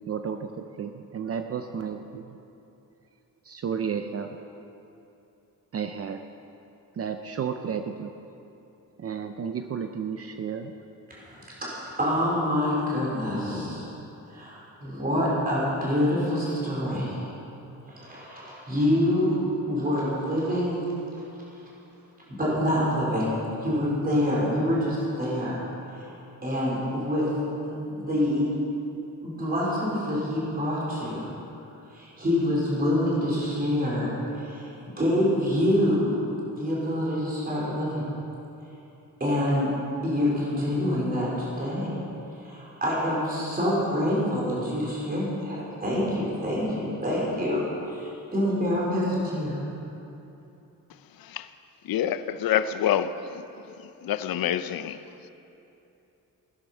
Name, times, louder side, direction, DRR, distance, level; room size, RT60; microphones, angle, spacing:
voice 1, 0.0-2.4 3.4-4.4 5.7-6.2 6.9-8.1 9.0-10.8, right 7 dB, 45° right, 6 dB, 0.6 m, -32 dB
voice 2, 11.1-13.9 14.3-17.2 17.9-19.4 19.7-20.8 22.3-23.3 23.6-25.6 25.9-26.0 26.4-27.3 27.6-28.5 29.2-31.2 31.9-34.1 34.4-36.2 36.6-38.0 39.2-39.7 40.0-41.9 42.4-49.6, left 1 dB, 25° right, -6 dB, 4.3 m, -26 dB
voice 3, 51.8-53.4 54.0-55.0, left 10 dB, 85° left, 12 dB, 0.7 m, -27 dB
16.5 x 10.5 x 6.6 m, 2.9 s
wide cardioid pair, 175°, 34 cm